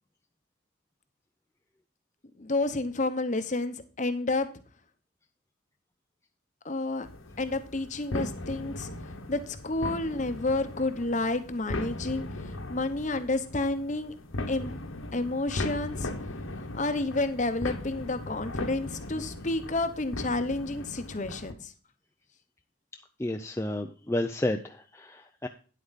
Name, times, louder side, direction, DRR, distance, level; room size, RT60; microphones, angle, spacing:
voice 1, 2.4-4.5 6.6-7.1 7.4-8.9 9.3-12.3 12.7-14.1 14.5-14.8 15.1-16.1 16.7-21.7, left 2 dB, 35° left, 10 dB, 0.9 m, -30 dB
sound 1, 7.0-21.5, left 1 dB, 80° left, 1.4 m, -38 dB
voice 2, 23.2-25.5, left 1 dB, 15° left, 5 dB, 0.5 m, -31 dB
9.8 x 8.0 x 4.1 m, 0.38 s
head